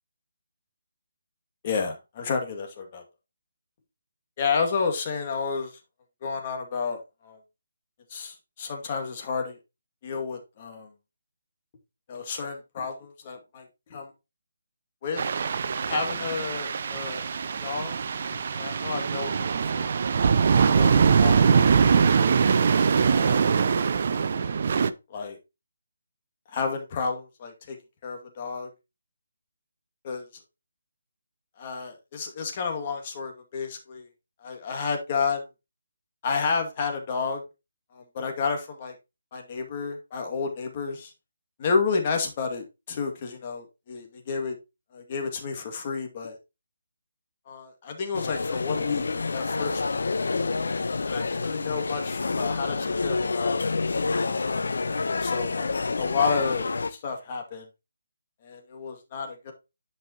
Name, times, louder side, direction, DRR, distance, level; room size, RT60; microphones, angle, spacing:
voice 1, 1.6-3.0 4.4-5.7 6.2-7.4 8.1-9.6 10.0-10.9 12.1-13.7 13.9-14.1 15.0-15.2 15.8-17.2 17.6-17.9 18.6-19.5 19.7-19.9 20.8-21.7 23.0-23.5 25.1-25.4 26.5-27.8 28.0-28.7 30.0-30.3 31.6-34.1 34.4-35.5 36.2-37.4 37.9-38.9 39.3-41.1 41.6-44.6 44.9-46.4 47.5-49.0 49.3-50.0 51.1-53.6 54.1-54.5 55.1-57.7 58.4-59.5, left 5 dB, 35° left, 3 dB, 2.2 m, -31 dB
sound 1, 15.2-24.9, right 6 dB, 45° right, 0.6 m, -22 dB
sound 2, 48.1-56.9, left 3 dB, 60° left, 0.9 m, -28 dB
10.5 x 5.5 x 2.9 m, 0.25 s
figure-of-eight pair, 150°, 0 cm